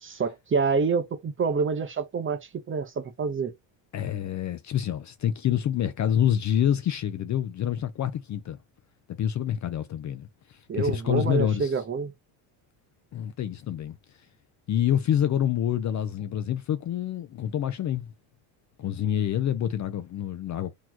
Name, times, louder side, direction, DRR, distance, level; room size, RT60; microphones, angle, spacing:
voice 1, 0.0-3.5 10.7-12.1, right 5 dB, 25° right, 0.7 m, -27 dB
voice 2, 3.9-8.6 9.1-11.7 13.1-14.0 14.7-18.1 18.8-20.7, left 10 dB, 35° left, 0.5 m, -27 dB
4.1 x 3.0 x 2.9 m
cardioid pair, 115°, 49 cm